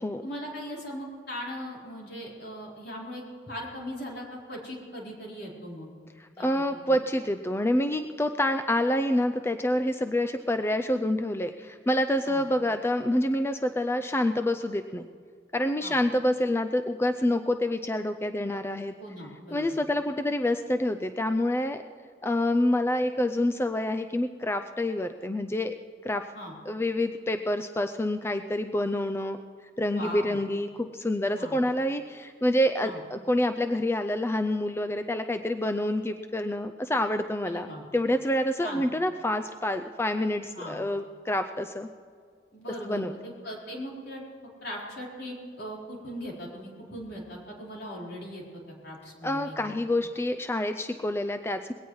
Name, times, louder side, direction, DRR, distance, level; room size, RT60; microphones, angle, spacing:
voice 1, 0.2-5.9 6.4-7.0 12.3-12.4 15.8-16.0 19.0-19.8 26.3-26.5 29.8-30.4 31.4-31.6 32.8-33.0 37.5-37.8 38.6-38.8 40.6-40.8 42.5-49.7, equal, 65° left, -3 dB, 4.4 m, -39 dB
voice 2, 6.2-15.0 15.5-18.9 19.5-21.8 22.2-25.8 26.0-26.3 26.7-29.4 29.8-37.7 37.9-41.9 42.8-43.1 49.2-51.7, left 1 dB, 15° left, 8 dB, 0.4 m, -27 dB
21.0 x 17.5 x 3.2 m, 2.1 s
head